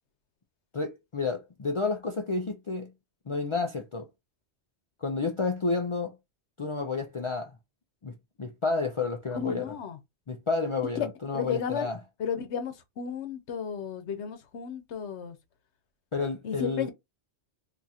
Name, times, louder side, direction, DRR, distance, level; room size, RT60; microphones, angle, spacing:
voice 1, 0.7-2.9 3.3-4.1 5.0-6.1 6.6-7.6 8.0-9.7 10.3-12.0 16.1-16.9, left 4 dB, 45° left, 0.4 m, -30 dB
voice 2, 9.3-10.0 11.3-11.9 12.2-15.4 16.4-16.9, left 7 dB, 85° left, 1.0 m, -34 dB
2.8 x 2.4 x 4.0 m
omnidirectional pair, 1.1 m